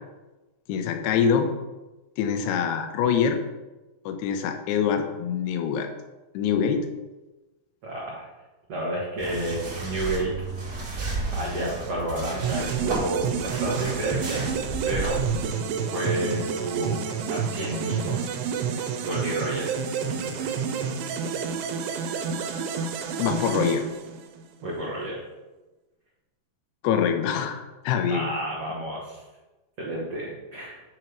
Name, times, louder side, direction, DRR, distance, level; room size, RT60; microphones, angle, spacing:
voice 1, 0.7-1.5 2.2-3.4 4.1-5.9 6.3-6.9 23.2-23.9 26.8-28.3, left 7 dB, 75° left, 6 dB, 2.6 m, -24 dB
voice 2, 7.8-8.3 8.7-10.4 11.3-14.5 14.8-15.2 15.8-18.2 19.0-20.5 24.6-25.2 28.1-29.2 29.8-30.8, right 1 dB, 70° right, -5 dB, 1.4 m, -31 dB
sound 1, 9.2-15.5, right 2 dB, 45° right, 1.4 m, -33 dB
sound 2, 12.4-24.5, right 6 dB, 85° right, 3.1 m, -29 dB
8.9 x 4.6 x 5.1 m, 1.1 s
omnidirectional pair, 5.2 m